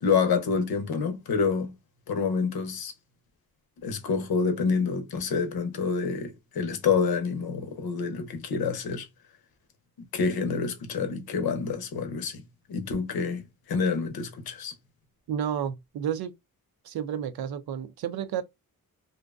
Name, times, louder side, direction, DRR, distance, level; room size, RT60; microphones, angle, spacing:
voice 1, 0.0-1.7 2.1-2.9 3.8-9.1 10.0-12.4 12.7-14.7, left 5 dB, 90° left, 0.7 m, -27 dB
voice 2, 15.3-16.3 16.8-18.4, right 9 dB, 80° right, 0.5 m, -31 dB
2.6 x 2.2 x 2.2 m
cardioid pair, 95°, 36 cm